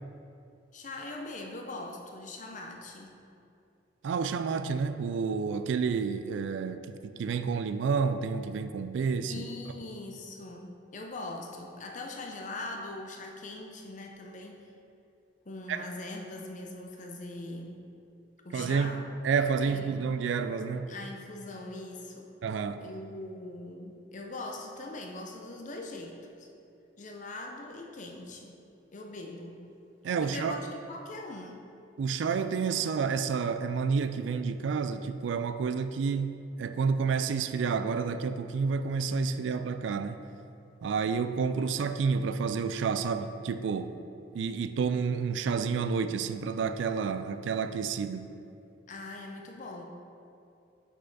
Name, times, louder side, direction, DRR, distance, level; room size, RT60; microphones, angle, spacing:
voice 1, 0.7-3.2 9.3-14.7 15.4-17.8 18.4-19.0 19.6-20.0 20.9-22.3 22.8-26.5 27.0-28.6 28.9-29.6 30.2-31.7 48.9-49.8, left 2 dB, 40° left, 1 dB, 0.7 m, -41 dB
voice 2, 4.0-9.4 15.7-15.8 18.5-18.9 19.2-20.9 22.4-22.8 30.0-30.6 32.0-40.2 40.8-44.0 44.3-48.3, right 5 dB, 85° right, 10 dB, 0.3 m, -30 dB
6.4 x 5.1 x 4.0 m, 2.5 s
head